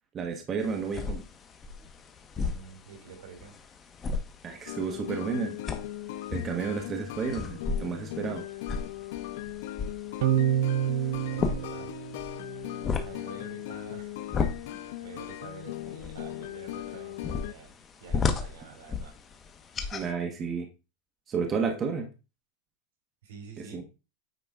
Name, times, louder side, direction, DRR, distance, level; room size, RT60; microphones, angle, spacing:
voice 1, 0.1-1.2 4.4-5.6 6.3-8.4 19.9-20.7 21.3-22.1 23.6-23.8, right 5 dB, 20° right, 3 dB, 1.2 m, -31 dB
sound 1, 0.6-20.1, left 5 dB, 20° left, 1.0 m, -36 dB
voice 2, 2.4-3.5 11.3-11.9 13.0-14.2 14.4-19.2 23.2-23.8, right 6 dB, 80° right, 2 dB, 3.9 m, -48 dB
sound 2, 4.7-17.5, left 14 dB, 65° left, 0.7 m, -39 dB
sound 3, 10.2-12.8, right 10 dB, 60° right, 0.5 m, -28 dB
9.2 x 3.9 x 4.8 m, 0.30 s
supercardioid pair, 160°, 0 cm